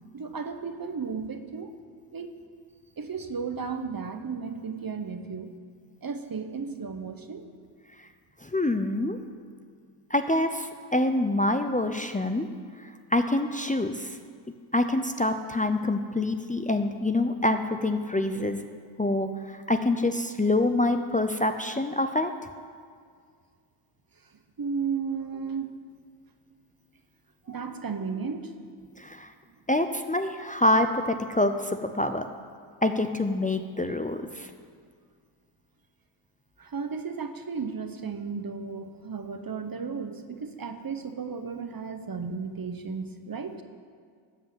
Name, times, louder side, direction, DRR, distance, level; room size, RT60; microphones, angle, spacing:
voice 1, 0.1-1.7 2.1-2.4 3.0-5.5 6.0-7.4 24.6-25.7 27.4-28.5 36.6-43.6, right 5 dB, 45° right, 8 dB, 0.9 m, -34 dB
voice 2, 8.4-9.2 10.1-12.5 12.8-14.2 14.7-18.7 19.0-22.3 29.0-29.3 29.7-32.2 32.8-34.5, left 2 dB, 15° left, 7 dB, 0.6 m, -26 dB
12.5 x 5.5 x 7.8 m, 2.1 s
cardioid pair, 45°, 49 cm